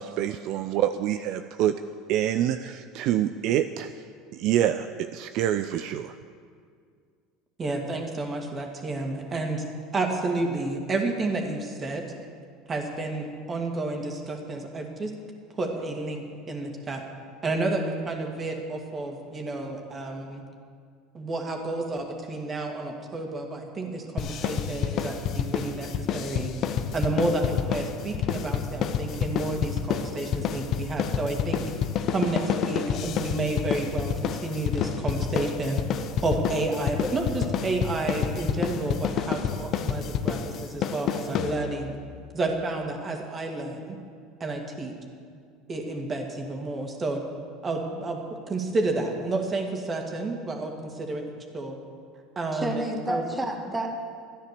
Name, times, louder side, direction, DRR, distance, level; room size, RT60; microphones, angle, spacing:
voice 1, 0.0-1.7 2.1-3.9 4.3-6.1, right 11 dB, 60° right, 9 dB, 0.4 m, -26 dB
voice 2, 7.6-9.6 9.9-12.0 12.7-15.1 15.5-17.0 17.4-20.4 21.1-26.5 26.9-31.6 32.1-35.8 36.2-41.9 42.3-44.0 44.4-44.9 45.7-47.2 47.6-51.3 51.5-51.8 52.4-53.2, right 2 dB, 30° right, 2 dB, 2.3 m, -30 dB
sound 1, 24.2-41.9, left 8 dB, 50° left, 0.9 m, -29 dB
voice 3, 52.5-54.0, right 1 dB, 15° right, 3 dB, 1.9 m, -30 dB
13.0 x 10.0 x 6.8 m, 2.1 s
hypercardioid pair, 85°, 0 cm